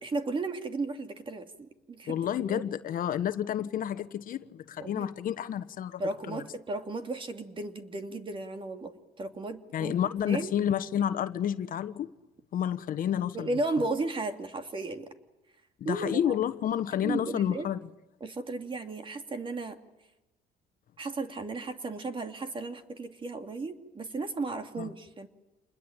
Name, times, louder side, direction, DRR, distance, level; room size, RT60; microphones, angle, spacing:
voice 1, 0.0-2.6 4.8-5.1 6.0-10.0 10.3-10.5 13.3-15.1 15.8-16.4 17.0-17.7 18.2-19.8 21.0-25.3, right 3 dB, 30° right, 2.7 m, -35 dB
voice 2, 2.1-6.0 6.3-6.4 9.7-12.1 12.5-13.5 13.8-13.9 15.8-17.8 24.8-24.9, left 10 dB, 55° left, 1.2 m, -30 dB
28.5 x 21.0 x 9.0 m
cardioid pair, 110°, 17 cm